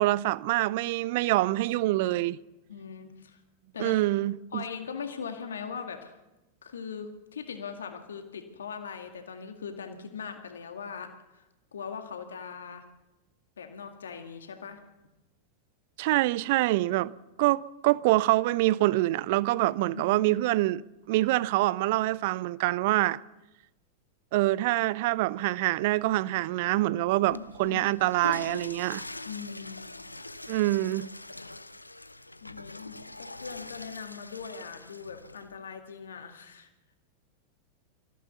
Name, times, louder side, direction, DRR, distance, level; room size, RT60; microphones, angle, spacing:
voice 1, 0.0-2.4 3.8-4.6 16.0-17.1 17.4-20.8 21.1-23.2 24.3-29.0 30.5-31.1, right 18 dB, 50° right, 0.6 m, -25 dB
voice 2, 2.7-3.4 3.7-4.0 4.5-6.1 6.6-11.4 11.7-12.8 13.6-14.8 19.9-20.3 27.2-27.8 29.2-29.8 32.4-36.7, left 6 dB, 65° left, 2.0 m, -40 dB
Water / Toilet flush, 27.2-35.5, left 2 dB, 85° left, 0.7 m, -43 dB
25.5 x 15.5 x 7.0 m
figure-of-eight pair, 90°, 0 cm